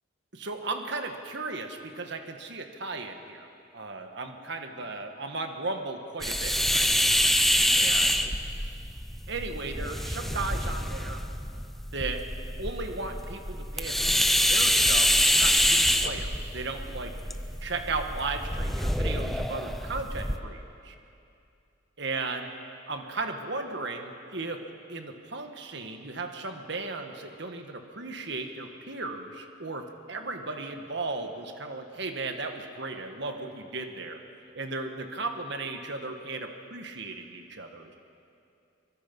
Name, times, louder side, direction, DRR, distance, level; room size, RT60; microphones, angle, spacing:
voice 1, 0.3-3.5 3.7-7.0 7.7-8.1 9.3-11.2 11.9-12.3 12.6-17.1 17.6-20.9 22.0-22.5 22.9-24.6 24.9-34.2 34.5-38.0, right 3 dB, 60° right, 5 dB, 1.7 m, -36 dB
sound 1, 6.2-20.4, equal, ahead, 0.7 m, -26 dB
24.0 x 23.5 x 5.5 m, 2.6 s
head